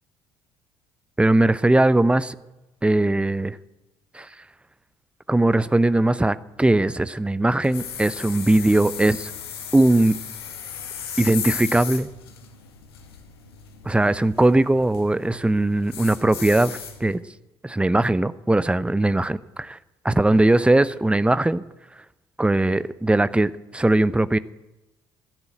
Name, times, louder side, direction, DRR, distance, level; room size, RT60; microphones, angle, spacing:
voice 1, 1.2-2.3 2.8-3.6 4.1-4.3 5.3-9.3 9.7-10.1 11.2-12.1 13.8-17.2 17.6-19.8 20.0-21.6 22.4-24.4, right 2 dB, 10° right, 16 dB, 0.7 m, -20 dB
sound 1, 7.6-17.2, left 7 dB, 75° left, 1.8 m, -36 dB
16.5 x 11.0 x 7.9 m, 1.0 s
figure-of-eight pair, 50°, 13 cm